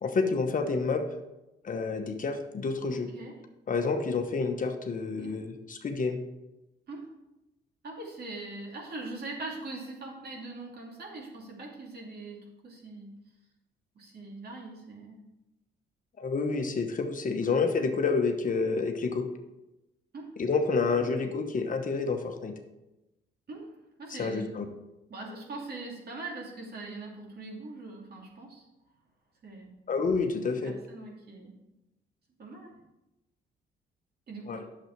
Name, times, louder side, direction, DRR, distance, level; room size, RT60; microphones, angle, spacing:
voice 1, 0.0-1.0 1.6-3.1 3.7-6.2 16.2-19.3 20.4-22.5 24.1-24.6 29.9-30.8 34.5-34.6, left 4 dB, 40° left, 5 dB, 1.1 m, -29 dB
voice 2, 2.9-3.3 5.2-5.4 6.9-7.1 7.8-13.1 13.9-15.2 17.4-17.6 20.1-20.3 20.9-21.2 23.5-23.7 24.0-24.6 25.1-28.7 29.4-29.7 30.4-31.6 32.4-32.8 34.3-34.7, right 2 dB, 50° right, -1 dB, 2.7 m, -42 dB
9.0 x 7.0 x 4.6 m, 0.96 s
cardioid pair, 90°, 20 cm